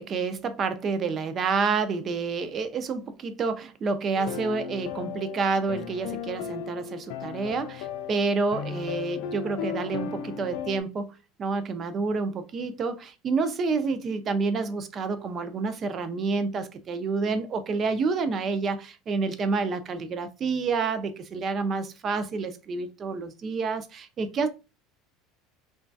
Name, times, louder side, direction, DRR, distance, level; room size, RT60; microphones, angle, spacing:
voice 1, 0.0-24.5, right 4 dB, 25° right, 0.3 m, -29 dB
sound 1, 4.1-10.8, left 8 dB, 60° left, 0.4 m, -36 dB
3.0 x 2.2 x 2.6 m
cardioid pair, 170°, 0 cm